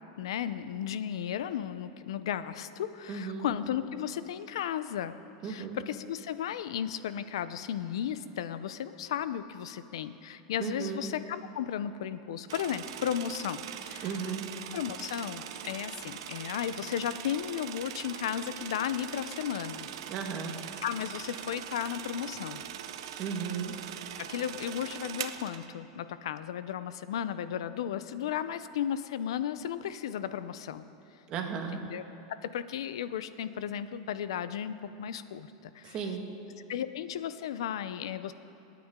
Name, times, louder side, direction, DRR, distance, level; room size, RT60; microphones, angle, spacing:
voice 1, 0.2-5.2 5.4-14.3 14.7-19.9 20.8-22.6 24.2-30.9 31.7-32.0 32.3-36.0 36.7-38.3, left 9 dB, 90° left, 13 dB, 0.6 m, -35 dB
voice 2, 3.1-3.5 5.4-5.8 10.6-11.1 14.0-14.4 20.1-20.5 23.2-23.7 31.3-31.8 35.8-36.2, right 6 dB, 35° right, 3 dB, 1.6 m, -35 dB
sound 1, 12.5-25.7, right 10 dB, 75° right, 0.7 m, -42 dB
26.5 x 9.3 x 3.7 m, 2.9 s
supercardioid pair, 155°, 3 cm